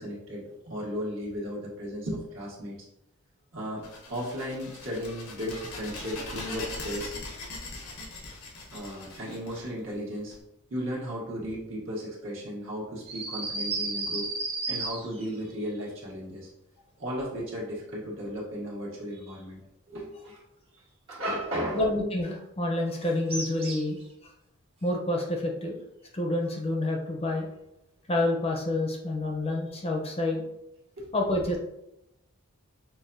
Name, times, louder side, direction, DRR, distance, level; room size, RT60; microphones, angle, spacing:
voice 1, 0.0-2.8 3.5-7.1 8.7-10.3 10.7-14.3 14.7-16.5 17.0-19.6 19.9-20.4 21.1-21.8 31.0-31.1, equal, 60° right, -5 dB, 1.5 m, -35 dB
sound 1, 3.8-10.3, left 2 dB, 90° left, 1.0 m, -41 dB
sound 2, 13.1-15.3 23.3-24.0, right 3 dB, 25° right, 0.7 m, -33 dB
voice 2, 21.7-24.3 24.8-25.8 26.1-27.5 28.1-30.4 31.1-31.6, left 2 dB, 30° left, 0 dB, 0.6 m, -28 dB
5.9 x 2.3 x 2.6 m, 0.85 s
head